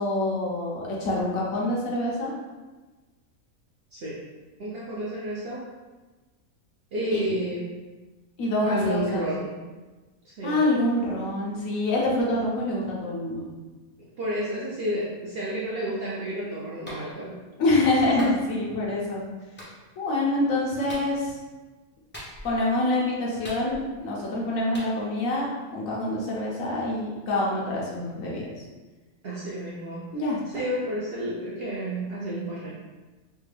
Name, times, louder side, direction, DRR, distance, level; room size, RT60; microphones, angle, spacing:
voice 1, 0.0-2.3 7.1-7.3 8.4-9.3 10.4-13.5 17.6-19.2 20.0-21.4 22.4-28.5 30.1-30.4, left 1 dB, 70° left, -4 dB, 1.2 m, -26 dB
voice 2, 3.9-4.2 4.6-5.7 6.9-7.6 8.6-9.6 10.2-10.6 14.2-17.4 29.2-30.1 30.5-32.8, right 1 dB, 60° right, -6 dB, 0.6 m, -31 dB
Clapping, 16.9-17.1 18.2-18.4 19.6-19.7 20.9-21.1 22.1-22.6 23.4-24.0 24.7-24.9, equal, 15° left, 0.5 m, -40 dB
3.3 x 2.2 x 3.2 m, 1.2 s
omnidirectional pair, 1.5 m